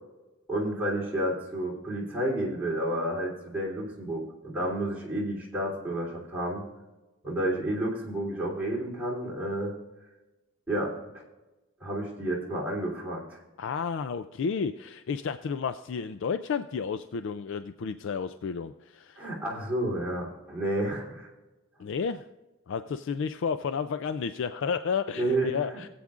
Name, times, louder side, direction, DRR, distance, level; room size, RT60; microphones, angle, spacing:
voice 1, 0.5-6.6 7.2-9.7 10.7-10.9 11.8-13.4 19.2-21.3 25.1-25.8, right 1 dB, 10° right, -5 dB, 3.1 m, -30 dB
voice 2, 13.6-19.3 21.8-22.2 22.7-25.9, left 6 dB, 60° left, 10 dB, 0.4 m, -31 dB
18.5 x 8.5 x 2.4 m, 1.1 s
head